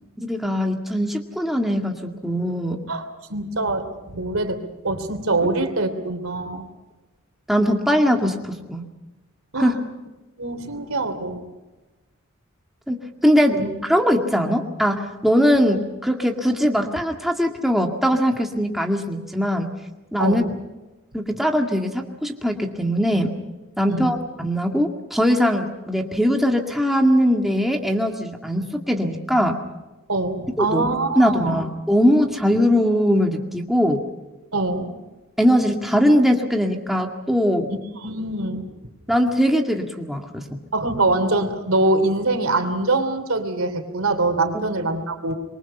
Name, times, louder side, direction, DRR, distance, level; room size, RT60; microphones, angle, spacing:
voice 1, 0.2-2.8 4.1-4.2 7.5-8.9 9.6-9.8 12.9-19.7 20.1-20.4 21.1-23.3 23.8-29.6 30.6-30.8 31.2-34.0 35.4-37.7 39.1-40.6 44.5-44.6, equal, ahead, 2 dB, 2.1 m, -21 dB
voice 2, 3.3-4.6 4.8-6.6 9.5-9.7 10.4-11.5 13.5-13.7 20.2-20.4 23.9-24.1 30.1-31.6 34.5-34.9 37.7-38.8 40.7-45.3, right 2 dB, 85° right, 7 dB, 3.2 m, -24 dB
26.5 x 23.5 x 5.6 m, 1.1 s
head